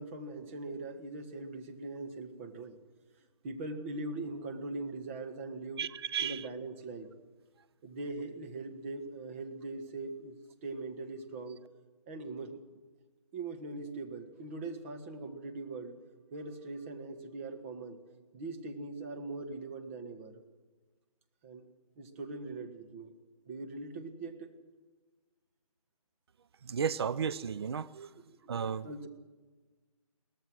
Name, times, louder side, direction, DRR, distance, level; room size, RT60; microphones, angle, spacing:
voice 1, 0.0-2.8 3.4-5.9 6.2-7.1 7.8-11.6 12.1-12.6 13.3-16.0 16.3-18.0 18.3-20.4 21.4-21.6 22.0-23.1 23.5-24.5 27.7-27.8 28.1-28.5 28.8-29.1, right 2 dB, 20° right, 1.5 m, -41 dB
voice 2, 5.8-6.5 26.6-28.1 28.5-28.9, right 7 dB, 45° right, 0.5 m, -34 dB
22.5 x 18.5 x 6.3 m
hypercardioid pair, 160°, 19 cm